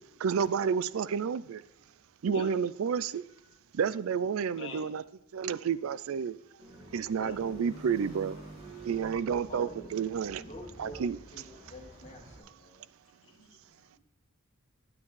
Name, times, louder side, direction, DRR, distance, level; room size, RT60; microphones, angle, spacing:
voice 1, 0.2-1.6 2.2-3.2 3.8-5.0 5.3-6.4 6.9-8.4 8.9-10.4 10.8-11.2, right 6 dB, 80° right, 17 dB, 0.4 m, -30 dB
sound 1, 6.6-12.4, right 2 dB, 30° right, 2.0 m, -48 dB
voice 2, 7.2-7.7 13.2-13.6 13.8-14.0, left 2 dB, 60° left, 2 dB, 1.6 m, -43 dB
voice 3, 9.5-9.9 10.4-12.8, equal, 35° left, -2 dB, 1.9 m, -48 dB
9.5 x 9.3 x 3.2 m, 0.85 s
head